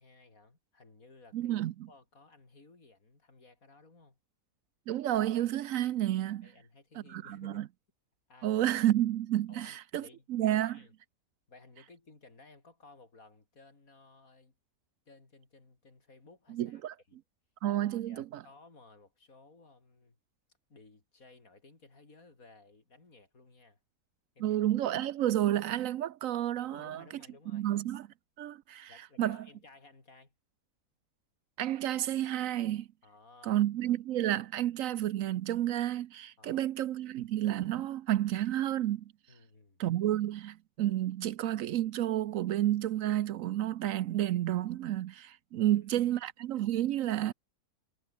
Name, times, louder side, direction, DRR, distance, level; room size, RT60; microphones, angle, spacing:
voice 1, 0.0-1.6 1.9-4.2 6.4-7.7 8.3-8.6 9.5-10.9 11.5-14.5 15.1-16.8 17.1-17.2 18.1-20.2 20.7-23.8 24.3-24.6 26.6-27.7 28.9-30.3 33.0-33.6 36.4-36.7 39.3-39.8 45.5-46.1, left 3 dB, 70° left, 4.2 m, -57 dB
voice 2, 1.3-1.7 4.9-6.5 7.1-7.6 8.4-10.8 16.5-16.9 17.6-18.4 24.4-27.0 27.5-28.1 28.4-28.9 29.2-29.4 31.6-32.9 33.4-39.0 39.8-47.3, right 13 dB, 70° right, 0.9 m, -30 dB
omnidirectional pair, 1.5 m